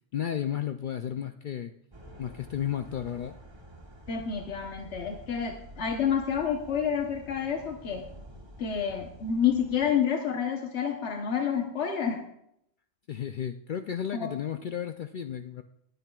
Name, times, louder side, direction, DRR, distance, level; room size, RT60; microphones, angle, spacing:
voice 1, 0.1-1.7 2.2-3.4 13.1-15.6, left 9 dB, 60° left, 7 dB, 0.6 m, -33 dB
sound 1, 1.9-9.9, right 1 dB, 25° right, 1.3 m, -49 dB
voice 2, 4.1-8.0 8.6-12.2 14.1-14.3, left 7 dB, 80° left, 2 dB, 1.3 m, -29 dB
21.0 x 9.0 x 2.3 m, 0.76 s
omnidirectional pair, 1.1 m